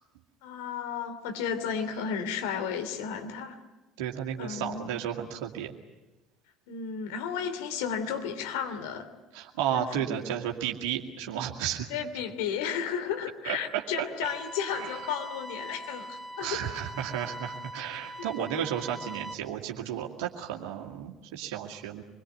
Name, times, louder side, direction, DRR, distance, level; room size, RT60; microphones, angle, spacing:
voice 1, 0.4-3.6 4.4-4.9 6.7-9.1 9.7-10.2 11.9-16.7 18.2-18.5, left 7 dB, 70° left, 7 dB, 3.0 m, -33 dB
voice 2, 4.0-5.7 9.3-11.9 13.4-13.8 14.8-14.9 16.4-22.0, right 10 dB, 70° right, 1 dB, 2.2 m, -33 dB
sound 1, 14.2-19.3, right 1 dB, 5° right, 3.2 m, -42 dB
26.0 x 22.5 x 9.4 m, 1.1 s
hypercardioid pair, 60°, 0 cm